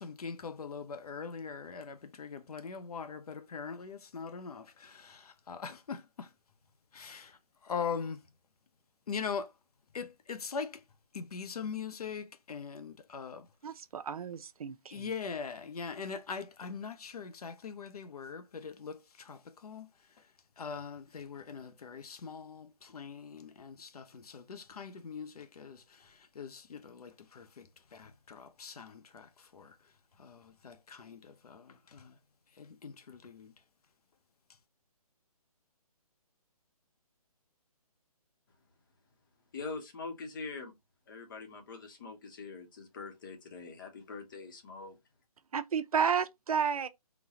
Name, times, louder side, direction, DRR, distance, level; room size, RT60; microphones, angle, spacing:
voice 1, 0.0-6.3 6.9-8.2 9.1-9.5 9.9-10.8 11.1-13.5 14.9-19.9 20.6-29.7 30.2-32.1 32.6-33.5, left 6 dB, 75° left, 0.7 m, -42 dB
voice 2, 13.6-15.1 45.5-46.9, right 7 dB, 70° right, 0.5 m, -32 dB
voice 3, 39.5-40.7 41.1-45.0, left 4 dB, 35° left, 0.8 m, -43 dB
4.0 x 2.1 x 2.8 m
hypercardioid pair, 160°, 20 cm